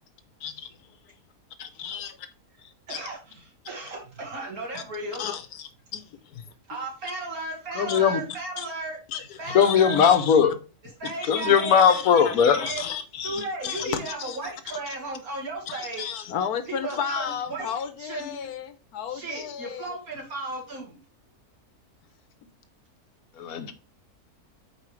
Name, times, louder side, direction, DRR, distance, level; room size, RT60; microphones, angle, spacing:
voice 1, 0.4-1.1 1.6-2.3 2.6-3.0 4.7-4.8 5.2-6.5 7.9-8.0 8.6-8.7 9.1-10.5 11.3-14.9 15.7-19.9, left 8 dB, 85° left, 1.3 m, -34 dB
voice 2, 2.9-5.2 6.7-9.0 9.4-10.0 11.0-12.8 13.2-16.1 16.7-17.7 18.0-18.3 19.1-21.0, right 3 dB, 70° right, 2.5 m, -35 dB
voice 3, 7.8-8.2 9.5-10.5 11.3-12.6 23.4-23.7, left 7 dB, 70° left, 1.2 m, -19 dB
8.4 x 4.7 x 3.2 m
omnidirectional pair, 1.6 m